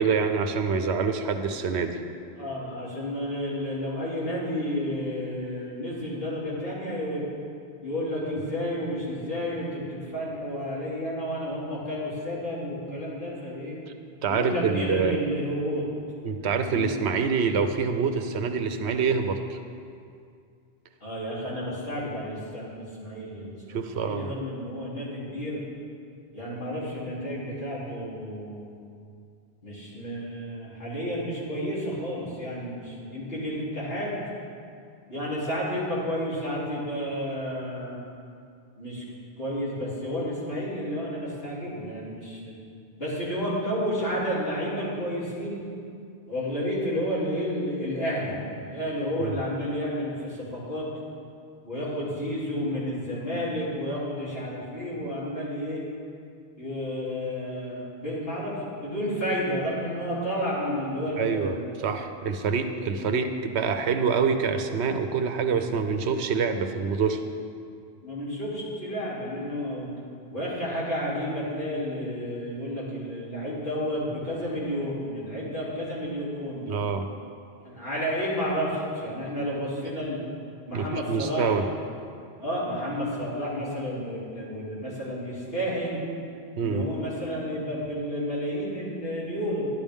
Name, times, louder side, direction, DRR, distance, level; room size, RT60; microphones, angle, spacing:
voice 1, 0.0-2.0 12.9-13.0 14.2-15.2 16.2-19.6 23.7-24.3 49.2-49.3 61.2-61.6 61.8-67.2 76.7-77.1 80.7-81.6 86.6-86.9, right 5 dB, 90° right, 7 dB, 1.0 m, -26 dB
voice 2, 2.4-7.2 7.8-13.8 14.3-15.9 16.7-16.9 21.0-25.6 26.3-28.8 29.6-34.2 35.1-38.0 38.8-39.0 39.4-42.6 43.0-45.6 46.3-50.9 51.6-55.8 56.6-61.6 62.8-63.3 68.0-69.9 70.3-76.8 77.6-80.2 80.7-81.6 82.4-86.0 86.6-89.7, equal, 60° left, -9 dB, 3.5 m, -31 dB
11.5 x 11.5 x 3.6 m, 2.3 s
omnidirectional pair, 1.1 m